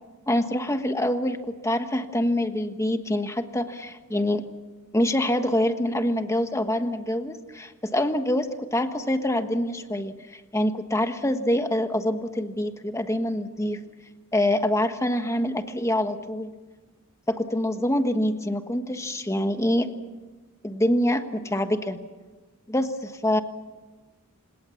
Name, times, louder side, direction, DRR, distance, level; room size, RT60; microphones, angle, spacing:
voice 1, 0.3-4.5 4.9-13.8 14.3-16.5 17.3-19.9 20.6-22.0 22.7-23.4, left 1 dB, 15° left, 8 dB, 1.4 m, -25 dB
28.5 x 18.0 x 7.2 m, 1.3 s
head